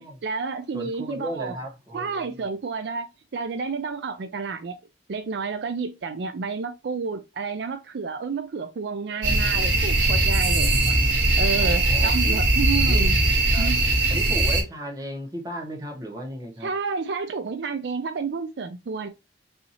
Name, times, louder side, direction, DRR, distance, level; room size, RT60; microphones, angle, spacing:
voice 1, 0.0-1.6 1.9-4.8 5.1-11.0 11.4-13.2 13.6-13.8 16.6-19.1, right 4 dB, 65° right, 0.4 m, -30 dB
voice 2, 0.7-2.4 11.6-12.3 12.8-13.0 13.5-13.7 14.1-16.7, equal, 20° right, 1.1 m, -35 dB
sound 1, 9.2-14.6, right 2 dB, 85° right, 2.0 m, -20 dB
5.5 x 2.8 x 2.8 m
head